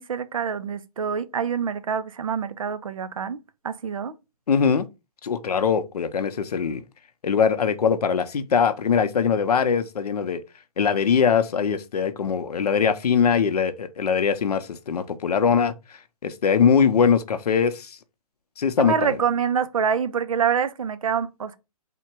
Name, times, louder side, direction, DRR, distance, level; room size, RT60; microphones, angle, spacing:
voice 1, 0.0-3.4 3.6-4.1 18.8-21.6, right 7 dB, 60° right, 0.5 m, -26 dB
voice 2, 4.5-4.9 5.2-6.8 7.2-10.4 10.8-15.7 16.2-18.0 18.6-19.2, left 6 dB, 80° left, 0.6 m, -22 dB
3.7 x 2.2 x 4.3 m
hypercardioid pair, 175°, 20 cm